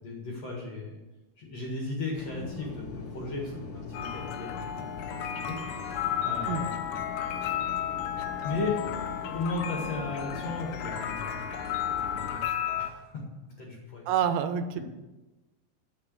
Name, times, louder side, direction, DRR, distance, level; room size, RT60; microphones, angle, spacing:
voice 1, 0.0-1.0 1.4-5.9 6.2-6.8 8.4-11.4 12.1-12.4 12.7-13.3 13.6-14.1, left 3 dB, 50° left, -2 dB, 2.2 m, -36 dB
sound 1, 2.2-12.4, left 4 dB, 65° left, 2.2 m, -42 dB
sound 2, 3.9-12.9, left 9 dB, 85° left, 2.3 m, -33 dB
voice 2, 14.1-14.8, right 8 dB, 85° right, 10 dB, 3.2 m, -27 dB
10.0 x 6.3 x 8.3 m, 1.1 s
omnidirectional pair, 5.3 m